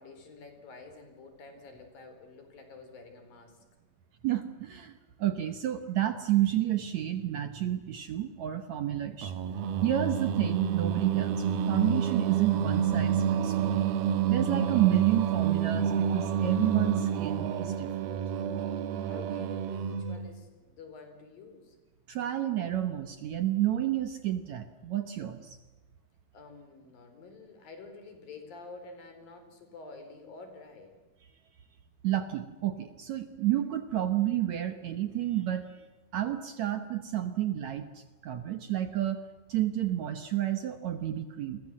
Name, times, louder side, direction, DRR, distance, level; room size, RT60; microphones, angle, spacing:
voice 1, 0.0-3.6 19.0-21.8 26.3-30.9, left 3 dB, 70° left, 7 dB, 5.9 m, -49 dB
voice 2, 4.2-4.9 5.2-9.4 9.8-13.8 14.3-18.1 22.1-25.6 32.0-35.9 36.1-39.2 39.5-41.6, right 12 dB, 65° right, 9 dB, 2.0 m, -30 dB
Singing, 9.2-20.4, right 8 dB, 85° right, 3.1 m, -29 dB
30.0 x 22.5 x 7.6 m, 1.2 s
omnidirectional pair, 4.3 m